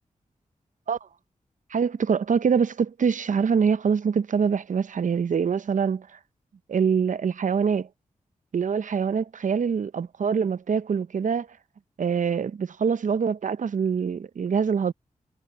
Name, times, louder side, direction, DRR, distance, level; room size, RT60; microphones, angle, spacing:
voice 1, 1.7-6.2 6.7-7.9 8.5-11.5 12.0-14.9, right 6 dB, 60° right, 0.7 m, -24 dB
cardioid pair, 40°, 14 cm